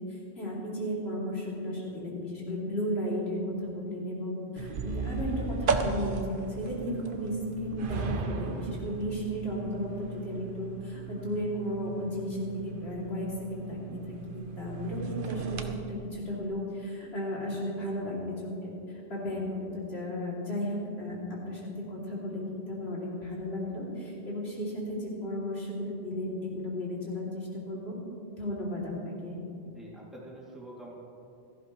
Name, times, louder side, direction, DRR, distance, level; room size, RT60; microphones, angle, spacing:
voice 1, 0.0-14.0 14.3-27.9 28.4-29.4, equal, 75° left, -5 dB, 3.1 m, -34 dB
sound 1, 4.6-15.7, right 5 dB, 60° right, 0.9 m, -36 dB
voice 2, 29.6-30.9, right 1 dB, ahead, -6 dB, 2.5 m, -46 dB
16.5 x 14.5 x 3.1 m, 2.6 s
omnidirectional pair, 1.1 m